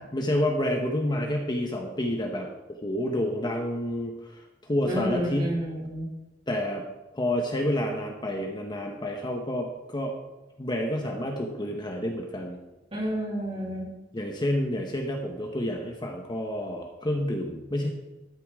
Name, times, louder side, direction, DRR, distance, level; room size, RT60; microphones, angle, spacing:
voice 1, 0.1-4.3 4.6-5.6 6.5-6.8 7.1-10.1 10.6-12.6 14.1-17.9, left 1 dB, 25° left, 2 dB, 1.1 m, -29 dB
voice 2, 4.9-6.1 12.9-13.9, equal, 30° right, -6 dB, 4.1 m, -30 dB
13.5 x 9.6 x 3.7 m, 1.0 s
head